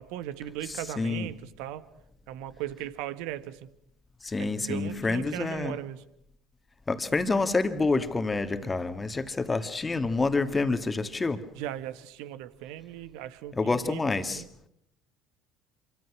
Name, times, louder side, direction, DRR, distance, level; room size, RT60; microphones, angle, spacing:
voice 1, 0.0-1.8 2.3-3.7 4.4-6.0 11.6-14.5, right 12 dB, 60° right, 1.5 m, -38 dB
voice 2, 1.0-1.3 4.2-5.8 6.9-11.4 13.5-14.4, left 3 dB, 20° left, 2.1 m, -27 dB
27.5 x 24.5 x 6.2 m
figure-of-eight pair, 60°, 0 cm